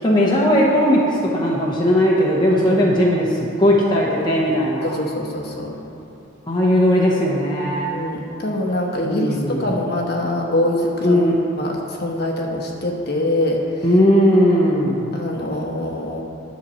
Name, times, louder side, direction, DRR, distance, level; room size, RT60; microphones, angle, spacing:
voice 1, 0.0-5.0 6.5-7.9 9.0-9.7 11.0-11.3 13.8-15.1, equal, 20° left, -4 dB, 0.8 m, -17 dB
voice 2, 2.5-2.9 4.8-5.7 7.8-11.3 11.6-13.8 15.1-16.2, left 1 dB, 45° left, -1 dB, 1.1 m, -24 dB
10.5 x 6.8 x 4.3 m, 2.7 s
head